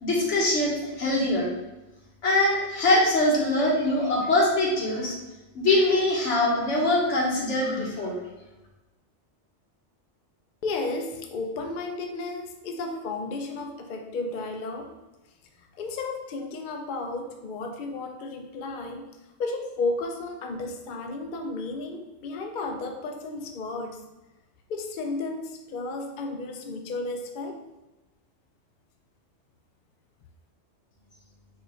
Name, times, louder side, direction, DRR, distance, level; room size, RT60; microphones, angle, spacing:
voice 1, 0.0-1.5 2.2-5.2 5.5-8.2, left 1 dB, 85° left, -3 dB, 1.5 m, -23 dB
voice 2, 10.6-14.9 15.6-19.1 19.4-24.0 24.7-27.6, left 3 dB, 55° left, 4 dB, 0.6 m, -33 dB
4.4 x 2.5 x 4.3 m, 1.1 s
omnidirectional pair, 1.2 m